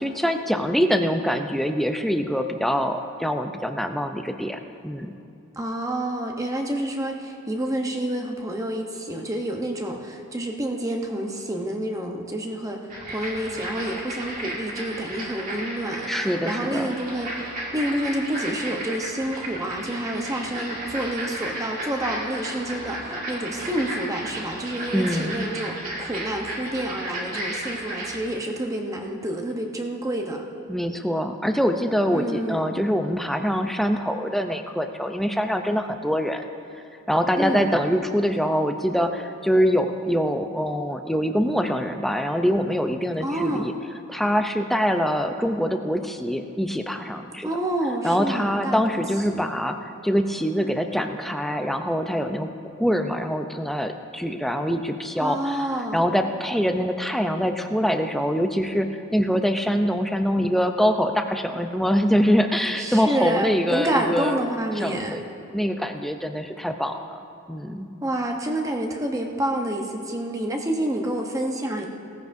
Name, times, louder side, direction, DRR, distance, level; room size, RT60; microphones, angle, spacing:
voice 1, 0.0-5.1 16.1-16.9 24.9-25.5 30.7-36.4 37.1-43.7 44.1-47.5 48.0-49.8 50.0-52.5 52.8-55.7 55.9-64.4 64.8-65.2 65.5-67.2 67.5-67.9, equal, ahead, 5 dB, 0.5 m, -24 dB
voice 2, 5.6-17.5 17.7-30.4 32.1-32.6 37.3-37.7 43.2-43.7 47.4-49.0 49.3-49.5 55.2-56.0 62.8-65.2 68.0-71.9, right 1 dB, 15° right, 2 dB, 0.9 m, -28 dB
sound 1, 12.9-28.2, right 1 dB, 40° right, 2.1 m, -33 dB
18.0 x 14.0 x 2.7 m, 2.6 s
head